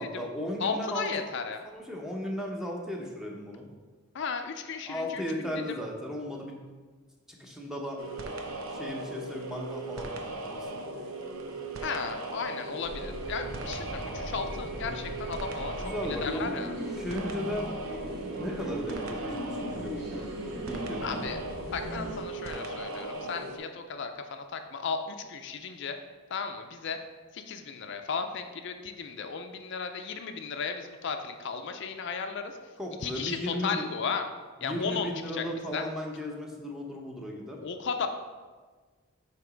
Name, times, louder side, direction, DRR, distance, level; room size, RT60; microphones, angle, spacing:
voice 1, 0.0-1.1 1.6-3.7 4.9-6.6 7.3-8.0 8.7-10.1 10.5-10.7 15.8-16.6 17.0-17.7 18.4-20.2 20.7-21.2 32.8-33.8 34.6-37.6, left 1 dB, ahead, -1 dB, 0.7 m, -36 dB
voice 2, 0.6-1.6 4.1-5.8 11.8-15.8 16.1-16.7 21.0-21.4 21.7-26.0 26.3-27.0 27.3-32.5 33.0-34.2 34.6-35.4 35.7-35.8 37.6-38.1, left 5 dB, 60° left, 6 dB, 0.4 m, -35 dB
sound 1, 8.0-23.6, right 2 dB, 90° right, 0.7 m, -38 dB
sound 2, 12.8-22.2, equal, 55° right, 1.1 m, -39 dB
7.6 x 2.9 x 5.0 m, 1.4 s
head